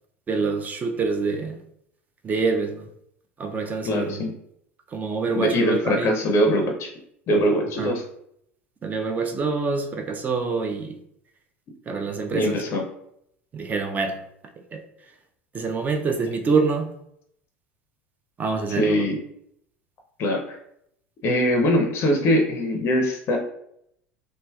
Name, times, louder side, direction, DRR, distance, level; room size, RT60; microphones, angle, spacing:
voice 1, 0.3-1.6 2.2-2.9 3.4-4.2 4.9-6.1 7.8-7.9 8.8-11.0 11.9-12.6 13.5-14.2 14.7-14.8 15.5-17.0 18.4-19.1, right 4 dB, 25° right, 0.4 m, -26 dB
voice 2, 3.8-4.3 5.3-6.9 7.3-8.0 12.3-12.8 18.7-19.2 20.2-20.6 21.2-23.4, equal, 40° left, 0.5 m, -22 dB
3.1 x 2.6 x 2.2 m
figure-of-eight pair, 70°, 7 cm